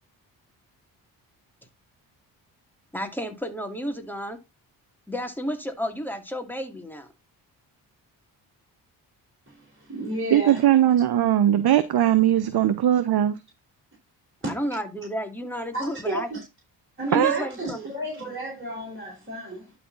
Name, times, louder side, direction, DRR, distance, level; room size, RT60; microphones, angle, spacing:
voice 1, 2.9-4.4 5.1-7.1 14.5-16.3 17.1-17.9, equal, 5° left, 2.4 m, -31 dB
voice 2, 9.5-10.6 14.4-14.6 15.7-16.4 17.0-19.7, right 1 dB, 25° right, 4.2 m, -32 dB
voice 3, 10.3-13.4 17.1-17.4, right 11 dB, 50° right, 0.9 m, -20 dB
11.5 x 4.4 x 3.9 m
hypercardioid pair, 50°, 48 cm